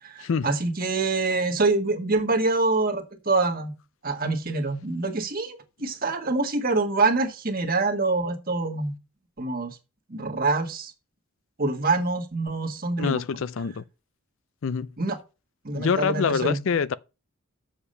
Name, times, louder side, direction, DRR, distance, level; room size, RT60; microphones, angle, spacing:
voice 1, 0.0-3.7 4.0-8.9 9.4-9.8 10.1-10.9 11.6-13.2 15.0-15.2 15.6-16.6, right 3 dB, 40° right, 1.6 m, -25 dB
voice 2, 13.0-13.8 14.6-14.9 15.7-16.9, left 6 dB, 65° left, 0.4 m, -25 dB
7.3 x 6.9 x 5.4 m
head